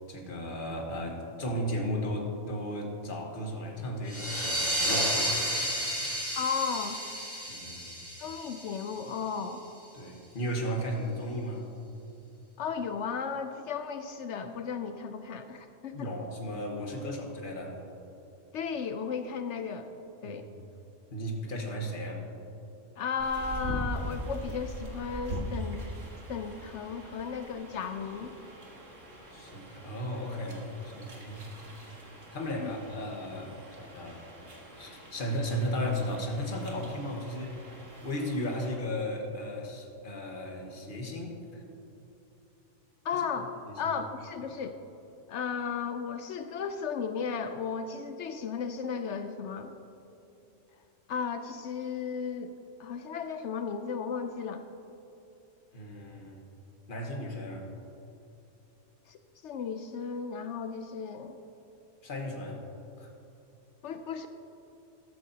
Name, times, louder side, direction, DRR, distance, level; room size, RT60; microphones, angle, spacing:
voice 1, 0.1-6.1 7.5-8.0 9.9-11.7 15.9-17.8 20.2-20.6 21.1-22.2 29.3-31.8 32.3-34.2 34.7-37.7 38.0-41.6 43.1-43.2 43.7-43.9 55.7-56.4 56.9-57.7 62.0-62.7 63.0-63.1, equal, 45° left, 1 dB, 1.5 m, -35 dB
sound 1, 4.1-9.4, equal, 10° right, 2.3 m, -32 dB
voice 2, 6.4-7.0 8.2-9.6 12.6-16.1 18.5-19.9 20.2-20.5 23.0-25.9 26.3-28.4 32.6-32.7 43.0-43.5 43.8-44.8 45.3-49.7 51.1-52.5 52.8-54.6 59.1-59.2 59.4-61.4 63.8-64.3, left 6 dB, 70° left, 8 dB, 0.9 m, -35 dB
sound 2, 23.2-38.8, equal, 85° right, 2.0 m, -42 dB
13.5 x 13.0 x 2.8 m, 2.9 s
omnidirectional pair, 1.3 m